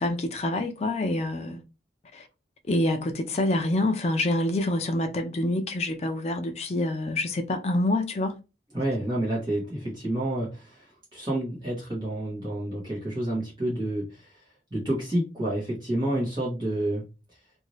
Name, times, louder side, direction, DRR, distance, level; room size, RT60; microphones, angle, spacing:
voice 1, 0.0-1.6 2.1-2.3 2.7-8.3, left 1 dB, 35° left, 0.4 m, -26 dB
voice 2, 8.7-14.4 14.7-17.0, right 1 dB, 25° right, 1.2 m, -29 dB
2.6 x 2.6 x 3.1 m
head